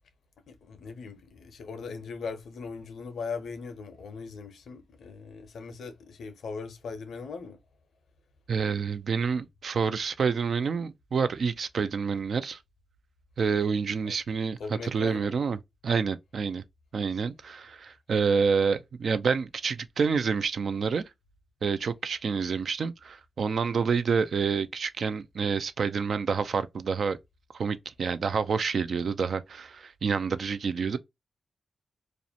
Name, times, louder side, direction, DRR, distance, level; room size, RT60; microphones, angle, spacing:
voice 1, 0.5-7.6 14.0-14.2 14.6-15.4, left 5 dB, 80° left, 0.5 m, -39 dB
voice 2, 8.5-12.6 13.4-15.6 15.8-16.6 16.9-21.1 21.6-27.2 27.5-31.0, right 5 dB, 70° right, 0.3 m, -28 dB
2.4 x 2.1 x 2.6 m
cardioid pair, 55°, 0 cm